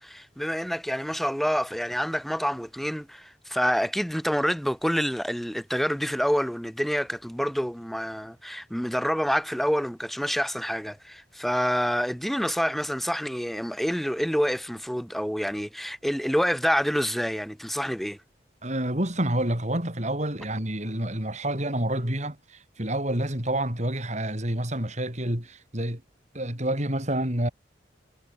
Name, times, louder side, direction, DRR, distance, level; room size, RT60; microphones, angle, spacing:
voice 1, 0.0-18.2, equal, ahead, 1.6 m, -27 dB
voice 2, 18.6-26.0 26.3-27.5, right 1 dB, 40° right, 6.1 m, -28 dB
head